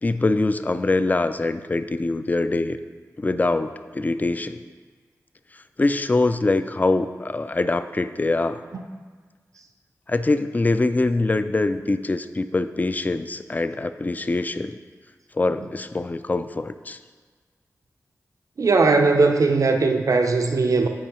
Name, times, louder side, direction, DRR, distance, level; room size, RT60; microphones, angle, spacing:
voice 1, 0.0-2.8 3.2-4.6 5.8-8.6 10.1-14.8 15.3-17.0, left 2 dB, 30° left, 11 dB, 0.3 m, -23 dB
voice 2, 18.6-20.9, right 3 dB, 65° right, 4 dB, 0.5 m, -19 dB
8.7 x 4.6 x 3.0 m, 1.5 s
cardioid pair, 40°, 6 cm